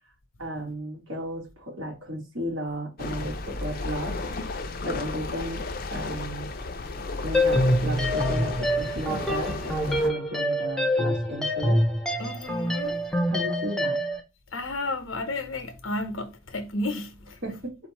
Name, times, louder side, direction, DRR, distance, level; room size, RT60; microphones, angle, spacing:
voice 1, 0.4-4.3 4.5-5.6 5.9-6.5 7.2-11.8 13.1-14.0 17.4-17.9, equal, 75° right, 2.5 m, -34 dB
sound 1, 3.0-10.1, left 2 dB, 45° left, 0.6 m, -33 dB
sound 2, 7.3-14.2, equal, ahead, 0.7 m, -25 dB
voice 2, 12.2-13.0 14.5-17.4, left 2 dB, 85° left, 1.1 m, -32 dB
4.3 x 2.7 x 4.3 m
head